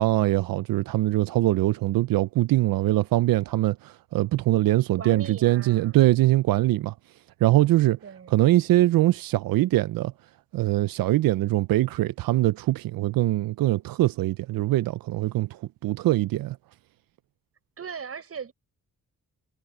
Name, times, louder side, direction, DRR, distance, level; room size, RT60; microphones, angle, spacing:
voice 1, 0.0-6.9 7.4-8.0 8.3-10.1 10.5-16.6, right 16 dB, 90° right, 0.5 m, -22 dB
voice 2, 4.9-6.0 8.0-8.5 17.8-18.5, right 6 dB, 45° right, 6.2 m, -39 dB
wide cardioid pair, 150°, 33 cm